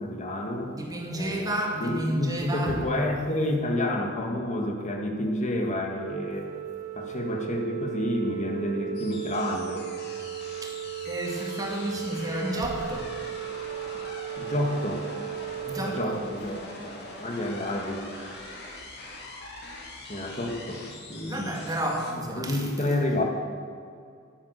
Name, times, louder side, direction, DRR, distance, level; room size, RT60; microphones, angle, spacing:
voice 1, 0.0-0.7 1.1-6.5 6.9-9.9 14.4-15.1 15.8-16.6 17.2-18.0 20.1-21.5 22.4-23.2, left 1 dB, 35° left, 2 dB, 1.6 m, -29 dB
voice 2, 0.7-2.8 10.6-10.7 11.1-13.1 15.7-16.1 21.3-22.7, right 1 dB, 15° right, -1 dB, 2.1 m, -31 dB
Organ, 5.9-17.0, right 11 dB, 85° left, 1.5 m, -36 dB
sound 1, 8.9-22.1, left 2 dB, 50° left, 2.2 m, -43 dB
10.5 x 9.5 x 8.1 m, 2.3 s
head